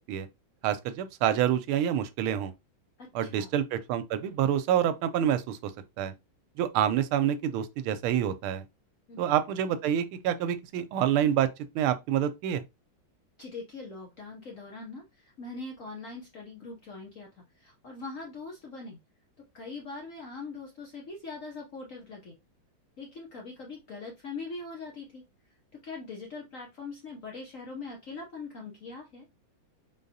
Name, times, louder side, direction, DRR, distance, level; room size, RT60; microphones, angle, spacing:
voice 1, 0.6-2.5 3.1-5.7 6.0-6.1 6.6-8.6 9.2-11.5 11.7-12.6, right 10 dB, 90° right, 1.5 m, -27 dB
voice 2, 3.0-3.5 9.1-9.2 13.4-19.0 19.5-22.3 23.0-25.2 25.7-29.3, left 3 dB, 60° left, 0.8 m, -42 dB
3.9 x 3.8 x 2.7 m
omnidirectional pair, 2.3 m